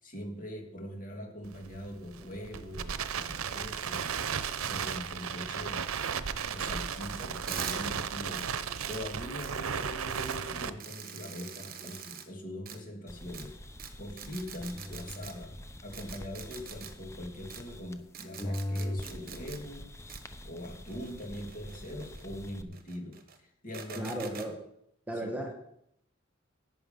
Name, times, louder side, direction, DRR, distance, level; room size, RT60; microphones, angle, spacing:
voice 1, 0.0-4.2 4.7-5.8 6.5-8.4 8.9-13.7 14.0-15.5 15.8-19.9 20.4-24.1 24.5-24.6 25.1-25.3, equal, 40° left, 2 dB, 2.4 m, -42 dB
Crackle, 1.4-10.7, right 7 dB, 90° right, 0.7 m, -35 dB
sound 1, 7.5-7.8 8.3-8.5 8.8-9.0 9.4-9.5 10.1-10.4 10.8-12.2 12.7-12.8 13.3-13.4 13.8-13.9 14.2-15.3 15.9-16.9 17.5-17.6 18.1-19.6 20.1-20.2 20.9-22.2 22.7-23.4 23.7-24.5, right 8 dB, 45° right, 1.2 m, -44 dB
sound 2, 13.1-18.1 18.4-22.6, left 1 dB, 15° left, 0.7 m, -42 dB
voice 2, 24.0-24.5 25.1-25.5, right 1 dB, 10° right, 2 dB, 1.4 m, -34 dB
11.0 x 9.2 x 5.4 m, 0.73 s
head